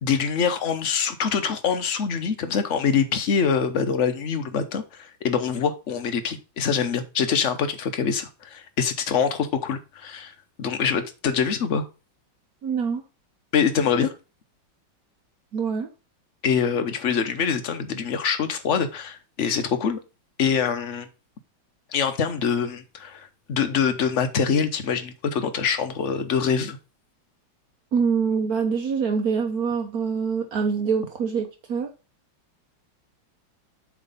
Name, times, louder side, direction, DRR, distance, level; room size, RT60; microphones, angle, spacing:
voice 1, 0.0-10.3 10.6-11.9 13.5-14.1 16.4-20.0 20.4-21.1 21.9-26.8, left 6 dB, 50° left, 0.9 m, -24 dB
voice 2, 12.6-13.0 15.5-15.9 27.9-31.9, right 6 dB, 55° right, 1.2 m, -25 dB
7.5 x 3.6 x 5.4 m
omnidirectional pair, 2.1 m